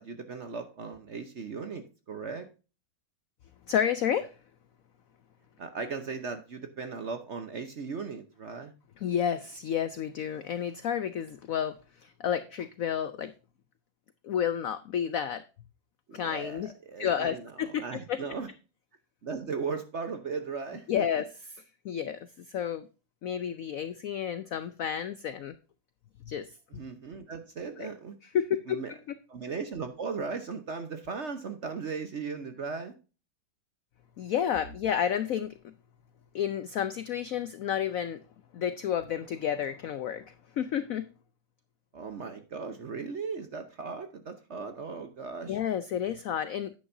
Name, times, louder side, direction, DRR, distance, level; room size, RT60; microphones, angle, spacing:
voice 1, 0.0-2.5 5.6-8.7 16.1-18.5 19.2-21.1 26.7-28.1 28.7-28.9 29.3-32.9 41.9-45.6, right 5 dB, 50° right, 8 dB, 0.9 m, -37 dB
voice 2, 3.7-4.3 9.0-13.3 14.2-15.4 16.1-16.7 17.0-18.2 20.9-21.3 21.8-22.9 23.2-25.5 26.3-26.5 27.8-27.9 28.3-29.2 34.2-35.7 36.3-38.2 38.5-41.1 45.5-46.7, left 9 dB, 90° left, 13 dB, 0.7 m, -31 dB
10.5 x 8.7 x 2.6 m, 0.33 s
omnidirectional pair, 2.1 m